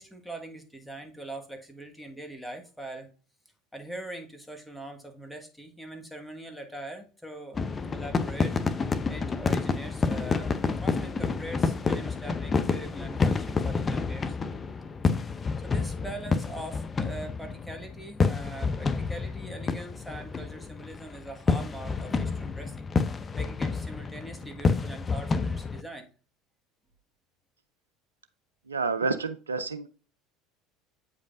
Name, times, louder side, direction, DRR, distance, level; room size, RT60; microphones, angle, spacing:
voice 1, 0.0-3.1 3.7-8.6 9.1-14.4 15.2-26.1, right 1 dB, ahead, 3 dB, 1.5 m, -42 dB
sound 1, 7.5-25.8, left 4 dB, 25° left, 0.6 m, -29 dB
voice 2, 28.7-29.9, right 4 dB, 90° right, 12 dB, 0.4 m, -29 dB
8.3 x 5.1 x 2.5 m, 0.37 s
hypercardioid pair, 70°, 0 cm